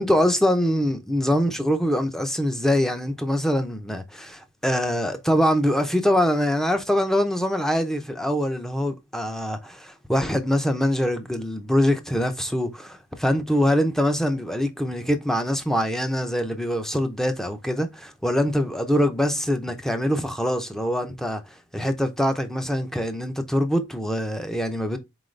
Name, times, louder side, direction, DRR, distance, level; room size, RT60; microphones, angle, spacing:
voice 1, 0.0-21.4 21.7-25.0, equal, ahead, 0.6 m, -24 dB
4.2 x 3.9 x 3.2 m
head